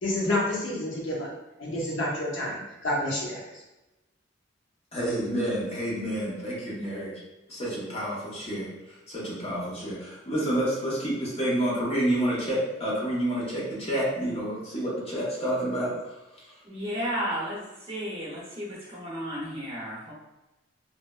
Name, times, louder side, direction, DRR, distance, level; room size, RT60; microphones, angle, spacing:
voice 1, 0.0-1.3 1.6-3.4, left 1 dB, 75° left, -4 dB, 0.7 m, -29 dB
voice 2, 4.9-7.2 7.5-8.7 9.1-16.0, right 1 dB, 30° left, -6 dB, 0.9 m, -29 dB
voice 3, 16.6-20.1, equal, 30° right, -5 dB, 0.8 m, -33 dB
3.2 x 2.1 x 2.3 m, 1.0 s
head